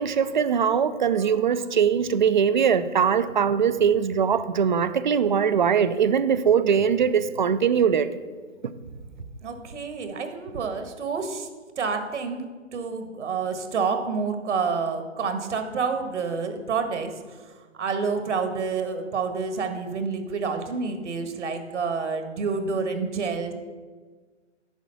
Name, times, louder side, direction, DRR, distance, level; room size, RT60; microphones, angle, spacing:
voice 1, 0.0-8.1, right 7 dB, 40° right, 14 dB, 0.4 m, -21 dB
voice 2, 9.4-11.5 11.8-12.4 12.7-17.1 17.7-23.5, right 5 dB, 65° right, 7 dB, 1.6 m, -28 dB
10.5 x 4.8 x 6.9 m, 1.4 s
hypercardioid pair, 160°, 38 cm